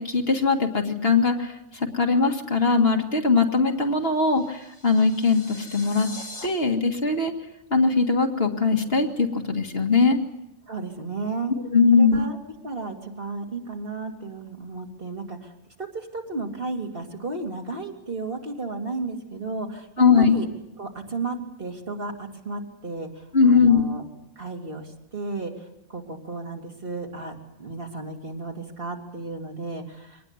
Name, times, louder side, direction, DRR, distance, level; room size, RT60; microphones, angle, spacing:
voice 1, 0.0-6.1 6.4-7.3 7.7-10.2 11.7-12.2 20.0-20.4 23.3-23.8, left 4 dB, 55° left, 3 dB, 2.2 m, -20 dB
sound 1, 3.8-6.5, left 2 dB, 75° left, 4.3 m, -43 dB
voice 2, 10.7-11.5 11.9-19.9 20.2-20.5 20.8-24.0 24.4-30.2, right 3 dB, 50° right, 2 dB, 3.1 m, -34 dB
24.0 x 19.5 x 9.8 m, 0.85 s
omnidirectional pair, 1.3 m